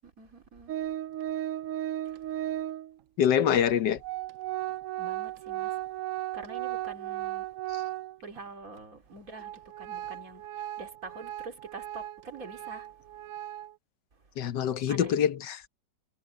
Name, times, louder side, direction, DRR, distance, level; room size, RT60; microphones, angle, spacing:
voice 1, 0.0-0.7 2.0-2.6 3.6-3.8 5.0-5.9 6.3-7.5 8.2-10.5 10.8-13.2 14.1-14.4 14.9-15.2, right 3 dB, 55° right, 3.1 m, -46 dB
Organ, 0.7-3.0 3.7-3.8 4.0-8.4 8.8-8.9 9.3-13.7, right 13 dB, 70° right, 0.7 m, -36 dB
voice 2, 3.2-4.0 7.7-7.8 14.4-15.6, left 9 dB, 80° left, 1.6 m, -25 dB
omnidirectional pair, 1.8 m